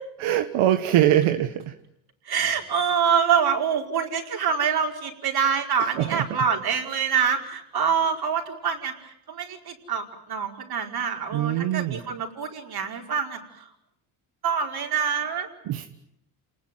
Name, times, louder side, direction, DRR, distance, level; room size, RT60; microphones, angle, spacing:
voice 1, 0.2-1.5 6.1-6.2 11.3-12.0 15.7-15.9, right 12 dB, 80° right, 7 dB, 1.6 m, -22 dB
voice 2, 2.3-8.9 9.3-13.4 14.4-15.5, right 7 dB, 50° right, 3 dB, 5.0 m, -25 dB
28.5 x 20.0 x 9.3 m, 0.78 s
cardioid pair, 105°, 49 cm